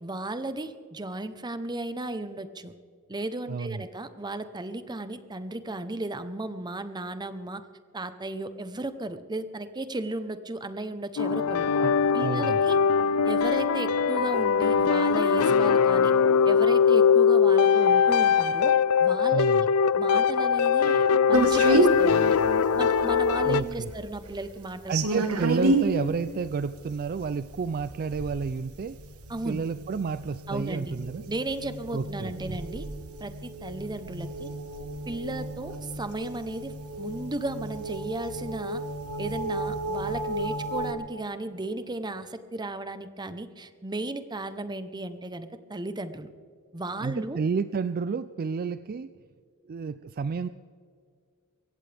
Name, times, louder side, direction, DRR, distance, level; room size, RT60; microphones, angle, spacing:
voice 1, 0.0-2.7 3.1-7.6 7.9-11.7 12.1-12.8 13.2-16.1 16.5-18.7 19.0-19.7 20.0-22.4 22.8-25.4 29.3-29.6 30.5-30.9 31.3-32.9 33.2-34.5 35.1-38.8 39.2-46.3 46.7-47.4, right 2 dB, 20° right, 11 dB, 0.8 m, -35 dB
voice 2, 3.5-3.8 11.8-12.6 19.3-19.7 23.4-23.9 24.9-29.0 29.5-31.2 31.9-32.6 47.0-49.1 49.7-50.5, right 5 dB, 40° right, 14 dB, 0.4 m, -30 dB
sound 1, 11.2-23.6, left 6 dB, 75° left, 0.5 m, -21 dB
sound 2, 21.3-40.9, right 2 dB, 75° right, 1.5 m, -31 dB
23.5 x 16.5 x 3.4 m, 2.2 s
head